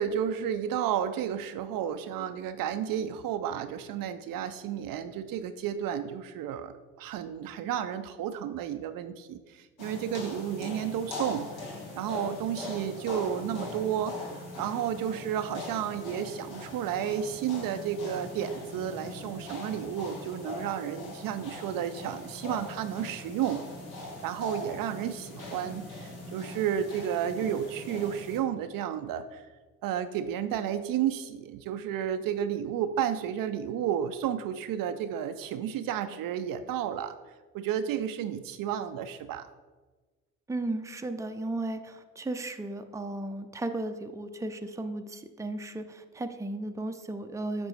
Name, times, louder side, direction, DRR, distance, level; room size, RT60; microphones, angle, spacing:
voice 1, 0.0-11.5 11.9-23.6 24.2-29.4 29.8-37.1 37.5-39.5, right 9 dB, 55° right, 10 dB, 0.5 m, -32 dB
sound 1, 9.8-28.4, left 2 dB, 65° left, 1.7 m, -41 dB
voice 2, 40.5-47.7, right 2 dB, 10° right, 7 dB, 0.6 m, -35 dB
8.1 x 5.1 x 3.3 m, 1.3 s
hypercardioid pair, 45°, 41 cm